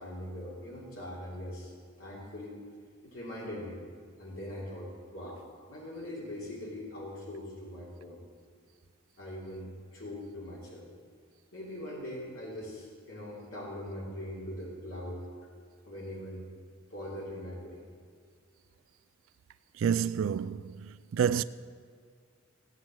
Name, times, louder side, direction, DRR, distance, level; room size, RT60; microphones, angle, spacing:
voice 1, 0.0-1.7 2.0-2.6 3.0-3.8 4.2-8.2 9.2-10.9 11.5-15.3 15.8-16.5 16.9-17.9, left 1 dB, 75° left, 3.1 m, -41 dB
voice 2, 19.8-20.7 21.1-21.4, right 7 dB, 75° right, 0.3 m, -28 dB
16.5 x 9.0 x 6.2 m
head